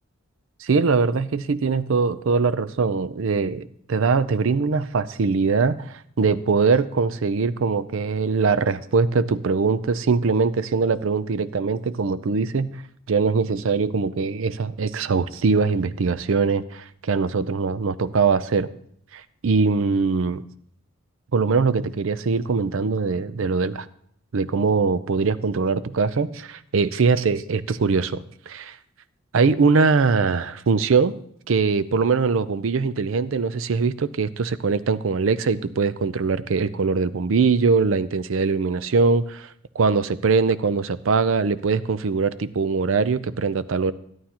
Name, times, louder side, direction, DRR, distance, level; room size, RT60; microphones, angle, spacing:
voice 1, 0.6-12.8 13.1-18.7 19.1-20.4 21.3-23.9 24.3-28.8 29.3-31.2 31.5-39.5 39.7-43.9, right 4 dB, 60° right, 15 dB, 0.5 m, -22 dB
12.5 x 11.5 x 2.9 m, 0.65 s
head